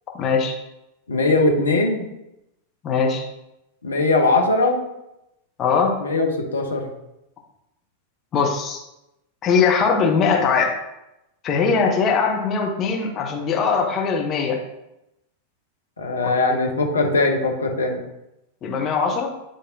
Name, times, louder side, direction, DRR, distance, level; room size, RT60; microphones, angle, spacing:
voice 1, 0.1-0.5 2.8-3.2 5.6-6.0 8.3-8.8 9.4-10.7 11.4-14.6 16.2-16.6 18.6-19.3, left 5 dB, 30° left, 1 dB, 1.2 m, -21 dB
voice 2, 1.1-2.1 3.8-4.8 6.0-6.9 16.0-18.0, left 2 dB, 75° left, 2 dB, 1.0 m, -20 dB
9.9 x 3.4 x 2.9 m, 0.89 s
figure-of-eight pair, 90°, 0 cm